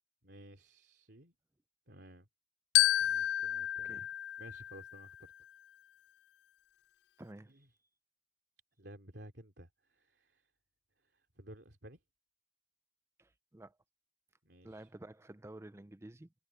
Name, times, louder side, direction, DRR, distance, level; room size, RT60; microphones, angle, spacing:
voice 1, 0.2-1.3 1.9-2.3 3.0-4.1 4.4-5.3 7.5-7.7 8.8-10.5 11.0-12.0 14.4-14.9, right 1 dB, 70° right, 3.0 m, -55 dB
Glockenspiel, 2.7-5.2, left 13 dB, 70° left, 0.3 m, -31 dB
voice 2, 7.2-7.7 13.2-13.8 14.6-16.3, right 1 dB, 15° right, 0.5 m, -51 dB
head